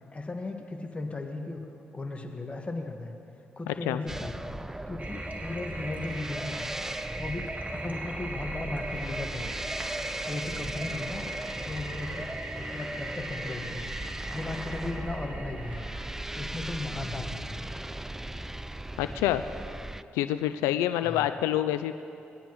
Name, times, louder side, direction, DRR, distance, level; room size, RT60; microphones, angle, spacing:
voice 1, 0.1-1.6 1.9-3.1 3.6-6.8 7.2-9.6 10.2-11.3 11.6-15.9 16.3-17.7 21.0-21.2, left 2 dB, 25° left, 3 dB, 1.5 m, -37 dB
sound 1, 4.1-20.0, right 1 dB, 10° right, 0.4 m, -37 dB
Toilet flush, 5.0-16.5, right 2 dB, 35° right, 1.9 m, -40 dB
voice 2, 19.0-19.4 20.1-22.0, left 12 dB, 85° left, 10 dB, 0.3 m, -27 dB
20.0 x 10.0 x 3.1 m, 2.7 s
supercardioid pair, 55°, 4 cm